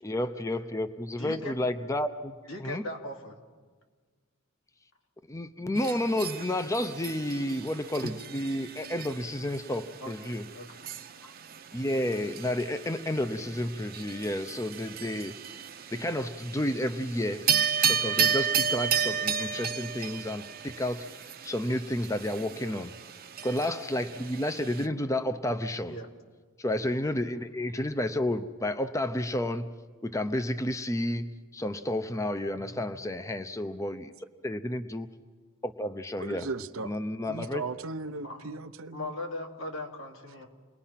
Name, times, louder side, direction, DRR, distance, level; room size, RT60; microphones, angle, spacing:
voice 1, 0.0-2.8 5.3-10.4 11.2-11.3 11.7-15.3 15.9-17.5 17.8-22.9 23.4-26.0 26.6-29.7 30.0-31.3 31.5-34.1 34.4-35.1 35.6-36.5 36.8-37.6, left 1 dB, 15° left, 10 dB, 0.6 m, -31 dB
voice 2, 1.2-1.5 2.5-3.4 10.0-10.8 22.5-22.8 25.8-26.1 32.5-32.8 38.1-38.4 38.9-40.5, left 1 dB, 70° left, 1 dB, 2.6 m, -39 dB
sound 1, 5.7-24.9, right 7 dB, 45° right, 0.8 m, -33 dB
voice 3, 36.2-37.0 37.3-39.1, right 3 dB, 85° right, 8 dB, 0.8 m, -37 dB
29.0 x 20.5 x 5.8 m, 1.5 s
head